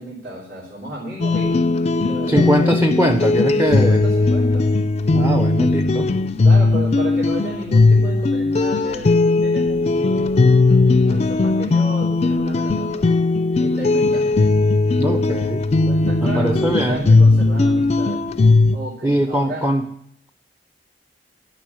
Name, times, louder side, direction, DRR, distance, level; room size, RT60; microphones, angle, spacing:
voice 1, 0.0-1.6 2.0-2.8 3.5-4.7 6.4-13.1 13.5-14.3 15.9-18.2 18.7-19.7, equal, 65° right, -7 dB, 3.4 m, -33 dB
sound 1, 1.2-18.8, left 3 dB, 35° left, 0.4 m, -17 dB
voice 2, 2.3-4.0 5.1-6.1 15.0-15.6 16.2-17.1 19.0-19.8, right 1 dB, 10° right, 7 dB, 0.5 m, -21 dB
12.5 x 5.5 x 8.4 m, 0.70 s
head